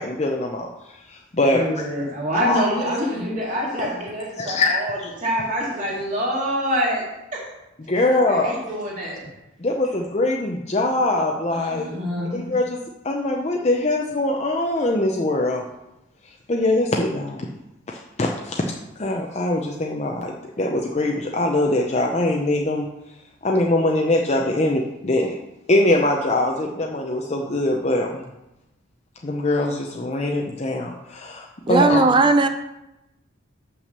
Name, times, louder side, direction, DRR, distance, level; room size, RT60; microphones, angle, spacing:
voice 1, 0.0-1.8 2.3-2.6 3.8-3.9 4.4-5.1 7.8-8.5 9.6-11.9 12.3-12.8 13.0-15.6 16.2-17.5 17.9-18.6 19.0-22.9 23.4-25.4 25.7-28.3 29.2-32.3, left 2 dB, 35° left, 0 dB, 0.6 m, -23 dB
voice 2, 1.5-7.0 7.3-7.5 8.1-9.3 11.5-12.4, equal, 40° right, -5 dB, 2.6 m, -26 dB
voice 3, 31.7-32.5, right 3 dB, 25° right, 9 dB, 0.3 m, -16 dB
6.2 x 6.0 x 6.6 m, 0.93 s
head